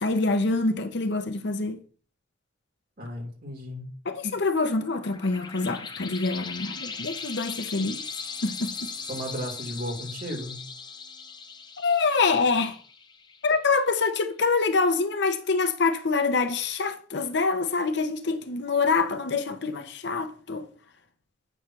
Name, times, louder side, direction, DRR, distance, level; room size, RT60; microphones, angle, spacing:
voice 1, 0.0-1.8 4.0-8.0 8.4-8.9 11.8-12.8 13.4-20.7, left 4 dB, 65° left, 0.8 m, -25 dB
voice 2, 3.0-3.9 9.1-10.6, equal, 55° right, 2.8 m, -34 dB
sound 1, 4.6-13.8, left 5 dB, 25° left, 0.7 m, -39 dB
8.8 x 3.3 x 6.0 m
head